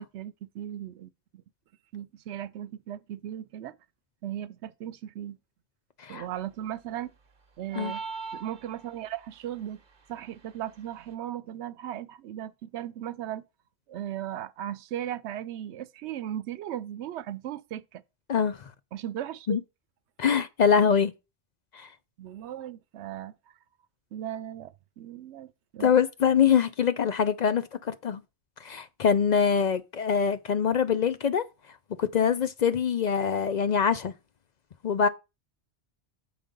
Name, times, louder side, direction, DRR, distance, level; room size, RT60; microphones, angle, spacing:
voice 1, 0.0-1.4 1.9-3.8 4.2-5.4 6.1-7.1 7.6-8.0 8.3-9.8 10.1-13.4 13.9-18.0 18.9-19.5 22.2-23.4 24.1-25.9, right 11 dB, 85° right, 0.9 m, -37 dB
sound 1, 7.7-9.2, right 5 dB, 50° right, 1.1 m, -38 dB
voice 2, 20.2-21.1 21.7-21.9 25.8-28.2 28.6-31.4 32.0-34.1 34.8-35.1, left 7 dB, 55° left, 0.5 m, -24 dB
7.1 x 5.1 x 5.2 m
omnidirectional pair, 1.1 m